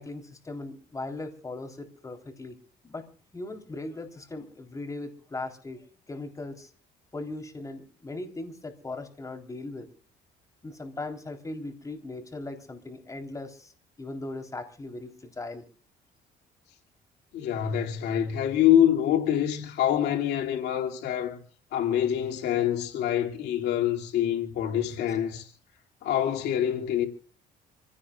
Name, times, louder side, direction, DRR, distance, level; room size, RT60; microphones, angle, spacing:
voice 1, 0.0-2.6 2.8-3.1 3.3-6.7 7.1-9.9 10.6-13.7 14.0-15.6, left 2 dB, 20° left, 3.6 m, -38 dB
voice 2, 17.3-21.4 21.7-25.5 26.0-27.1, left 10 dB, 80° left, 2.5 m, -25 dB
26.5 x 16.5 x 2.4 m
cardioid pair, 110°, 17 cm